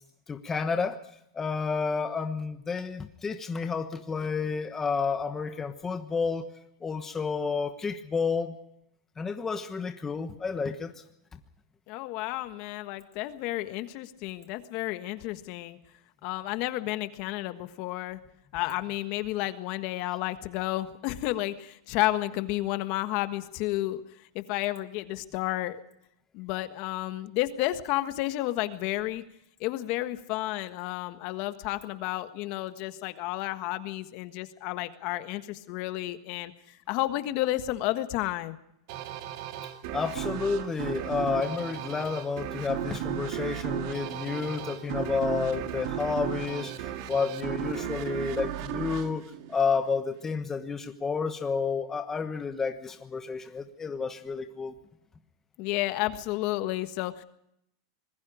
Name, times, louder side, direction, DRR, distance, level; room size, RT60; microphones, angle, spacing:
voice 1, 0.3-1.0 1.3-6.5 6.8-8.6 9.2-10.9 39.9-49.2 49.5-54.8, left 5 dB, 15° left, 7 dB, 1.2 m, -30 dB
voice 2, 11.9-15.8 16.2-18.2 18.5-24.0 24.3-25.8 26.3-29.2 29.6-38.6 55.6-57.2, left 16 dB, 45° left, 10 dB, 1.5 m, -31 dB
sound 1, 38.9-50.1, right 11 dB, 55° right, 2.1 m, -35 dB
25.5 x 21.0 x 5.0 m, 0.76 s
supercardioid pair, 145°, 3 cm